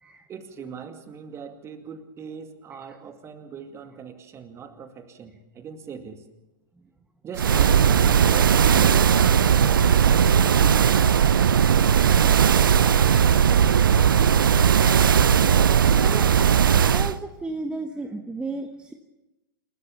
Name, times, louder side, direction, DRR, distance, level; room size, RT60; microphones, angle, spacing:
voice 1, 0.3-6.2 7.2-11.7 15.5-16.2, right 6 dB, 25° right, 7 dB, 2.2 m, -40 dB
sound 1, 7.4-17.2, right 8 dB, 75° right, 0.7 m, -18 dB
voice 2, 16.9-18.9, right 3 dB, 10° right, 5 dB, 1.2 m, -33 dB
28.0 x 13.0 x 7.1 m, 1.0 s
figure-of-eight pair, 105°, 12 cm